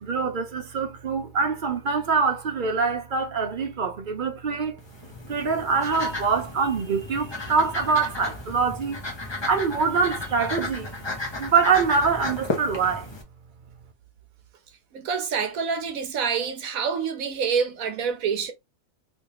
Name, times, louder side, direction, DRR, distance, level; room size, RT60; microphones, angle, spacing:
voice 1, 0.0-4.8 5.3-9.0 9.4-10.9 11.4-13.1, right 5 dB, 50° right, 0.6 m, -24 dB
sound 1, 4.8-13.2, left 2 dB, 20° left, 0.9 m, -34 dB
voice 2, 14.9-18.5, right 6 dB, 75° right, 1.3 m, -27 dB
3.2 x 3.2 x 2.9 m
omnidirectional pair, 1.5 m